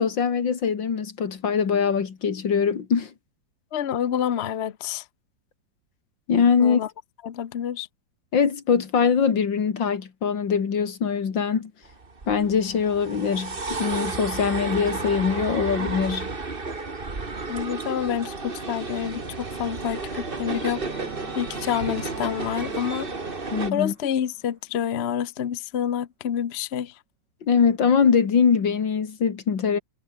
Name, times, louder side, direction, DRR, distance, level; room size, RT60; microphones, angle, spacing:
voice 1, 0.0-3.1 6.3-6.8 8.3-11.7 12.3-16.3 23.5-23.9 27.4-29.8, left 6 dB, 80° left, 2.8 m, -22 dB
voice 2, 3.7-5.0 6.6-6.9 7.2-7.9 17.5-23.1 23.7-26.9, left 9 dB, 50° left, 0.9 m, -28 dB
sound 1, 11.8-23.7, right 3 dB, 30° right, 2.3 m, -32 dB
sound 2, 15.7-24.7, right 3 dB, 70° right, 5.1 m, -43 dB
omnidirectional pair, 2.0 m